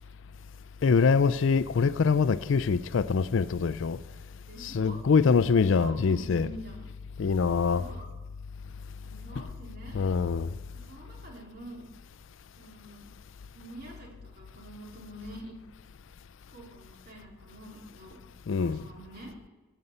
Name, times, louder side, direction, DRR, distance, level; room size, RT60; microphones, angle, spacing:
voice 1, 0.8-4.0 4.6-6.5 7.2-7.8 9.4-9.5 9.9-10.5 18.5-18.8, left 5 dB, 60° left, 0.4 m, -24 dB
voice 2, 4.5-5.0 5.3-6.9 7.6-8.0 9.0-10.0 10.7-11.9 12.6-13.1 13.5-15.5 16.5-18.2 18.6-19.3, right 1 dB, 45° right, 3.3 m, -46 dB
16.5 x 5.5 x 7.9 m
head